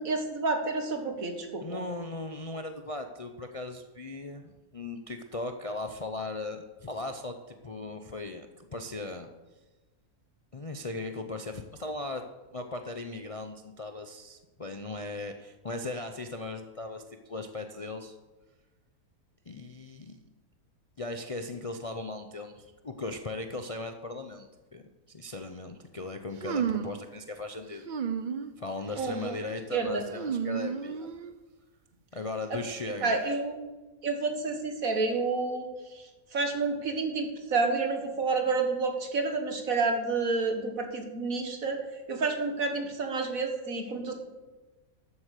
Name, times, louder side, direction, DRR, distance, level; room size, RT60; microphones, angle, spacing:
voice 1, 0.0-1.8 29.0-29.3 29.7-30.0 32.5-32.6 33.0-33.7 34.0-35.7 35.9-36.0 36.3-41.8 42.1-44.1, right 3 dB, 65° right, 5 dB, 2.1 m, -29 dB
voice 2, 1.6-9.3 10.5-12.2 12.5-18.2 19.5-20.2 21.0-27.8 28.6-31.1 32.1-33.3, left 2 dB, 35° left, 6 dB, 0.5 m, -38 dB
sound 1, 26.4-27.0 27.9-28.5 28.9-29.3 30.1-31.3, right 7 dB, 50° right, 0.6 m, -32 dB
13.0 x 8.1 x 6.6 m, 1.2 s
omnidirectional pair, 1.6 m